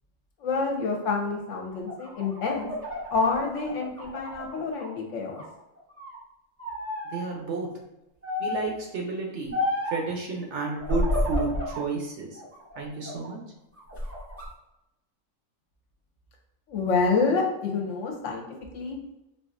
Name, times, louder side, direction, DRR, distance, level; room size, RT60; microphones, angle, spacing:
voice 1, 0.4-2.7 3.1-5.4 16.7-18.5 18.7-19.0, left 4 dB, 70° left, 1 dB, 0.9 m, -27 dB
sound 1, 1.7-4.9 5.3-6.2 6.6-7.2 8.2-8.8 9.5-10.1 10.8-11.9 12.3-13.3 13.8-14.5, left 1 dB, 20° right, 0.3 m, -31 dB
voice 2, 7.0-7.7 8.4-9.6 9.8-12.4 12.8-13.4, right 4 dB, 65° right, 0 dB, 0.8 m, -31 dB
4.0 x 2.4 x 2.5 m, 0.92 s
omnidirectional pair, 1.5 m